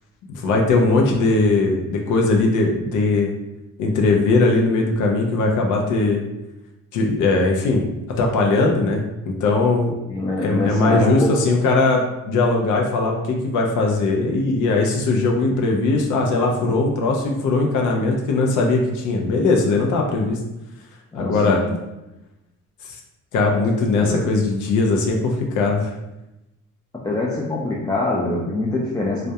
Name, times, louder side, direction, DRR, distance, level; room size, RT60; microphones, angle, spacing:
voice 1, 0.3-3.3 3.8-6.2 6.9-7.8 8.2-9.9 10.4-20.4 21.1-21.6 22.9-23.0 23.3-25.9, left 3 dB, 75° left, 1 dB, 0.5 m, -19 dB
voice 2, 10.1-11.6 21.1-21.7 23.5-23.7 24.0-24.3 27.0-29.3, left 2 dB, 15° left, -5 dB, 0.3 m, -24 dB
2.3 x 2.1 x 2.7 m, 0.96 s
cardioid pair, 90°, 30 cm